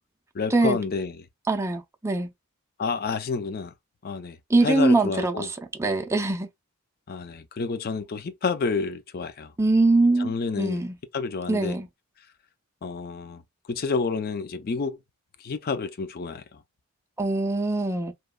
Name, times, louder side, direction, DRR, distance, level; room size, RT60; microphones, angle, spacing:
voice 1, 0.3-1.1 2.8-3.7 4.0-4.4 4.6-5.5 7.1-9.5 10.2-10.8 11.1-11.8 12.8-13.4 13.7-15.0 15.4-16.4, left 4 dB, 45° left, 0.5 m, -29 dB
voice 2, 1.5-2.3 4.5-6.5 9.6-11.0 11.5-11.9 17.2-18.1, right 2 dB, 15° right, 0.4 m, -23 dB
3.0 x 2.2 x 2.2 m
head